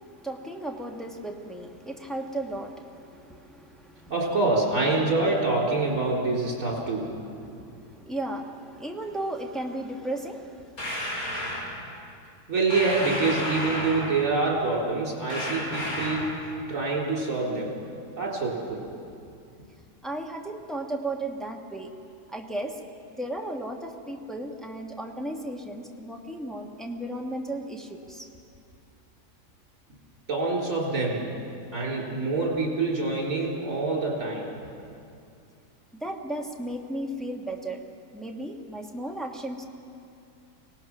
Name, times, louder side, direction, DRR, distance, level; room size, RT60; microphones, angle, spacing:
voice 1, 0.0-4.1 6.1-6.2 6.6-10.9 20.0-21.9 22.3-22.8 23.1-28.3 35.9-37.8 38.1-39.7, right 1 dB, ahead, 0 dB, 1.2 m, -35 dB
voice 2, 4.1-7.1 12.5-16.4 16.7-17.7 18.2-18.8 30.3-31.3 31.7-34.5, right 3 dB, 50° right, -3 dB, 4.3 m, -26 dB
sound 1, 10.8-11.7 12.7-14.3 15.3-16.3, left 1 dB, 55° left, 5.6 m, -31 dB
24.5 x 18.0 x 6.1 m, 2.5 s
omnidirectional pair, 1.8 m